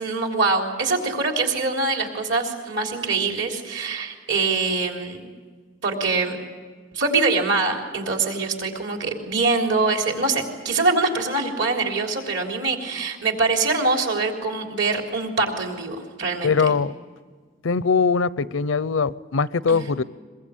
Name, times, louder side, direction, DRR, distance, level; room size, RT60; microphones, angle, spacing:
voice 1, 0.0-5.2 5.8-6.4 6.9-16.7 19.7-19.8, right 3 dB, 60° right, 2 dB, 3.7 m, -24 dB
voice 2, 16.4-17.0 17.6-20.0, left 5 dB, 80° left, 18 dB, 0.6 m, -21 dB
22.5 x 22.5 x 8.5 m, 1.5 s
head